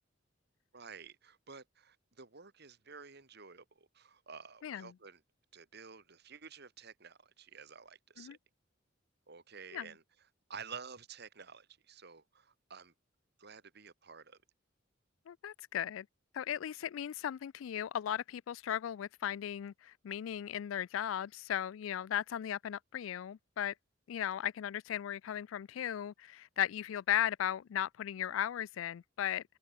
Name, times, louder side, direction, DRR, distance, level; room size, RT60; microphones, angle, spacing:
voice 1, 0.7-5.2 5.5-8.4 9.3-10.0 10.5-12.9 13.4-14.4, right 6 dB, 60° right, 2.1 m, -51 dB
voice 2, 4.6-4.9 8.2-8.4 9.7-9.9 15.3-16.1 16.3-23.7 24.1-29.4, left 10 dB, 90° left, 0.3 m, -36 dB
head